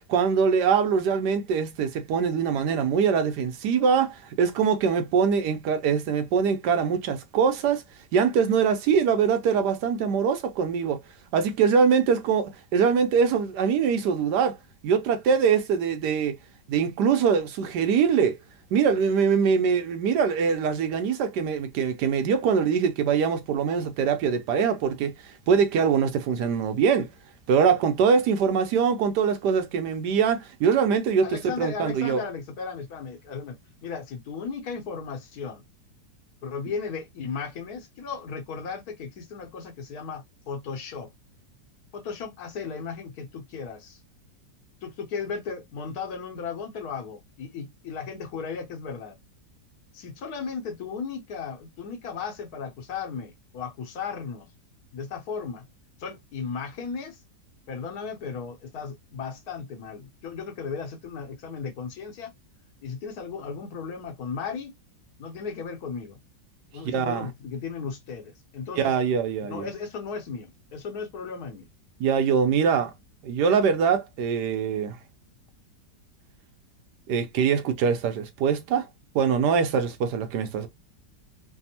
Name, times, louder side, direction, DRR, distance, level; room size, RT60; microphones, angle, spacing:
voice 1, 0.1-7.8 8.1-11.0 11.3-14.6 14.8-16.3 16.7-18.4 18.7-25.1 25.5-27.1 27.5-32.2 66.8-67.3 68.8-69.6 72.0-72.9 73.2-75.0 77.1-78.9 79.1-80.7, right 6 dB, 75° right, 1.2 m, -23 dB
voice 2, 31.2-35.6 36.4-41.1 41.9-44.0 44.8-49.2 49.9-54.5 54.9-55.6 56.0-57.2 57.7-62.3 62.8-64.7 65.2-66.2 66.7-68.9 69.5-71.7, left 5 dB, 65° left, 1.1 m, -35 dB
3.3 x 2.0 x 2.7 m
omnidirectional pair, 1.9 m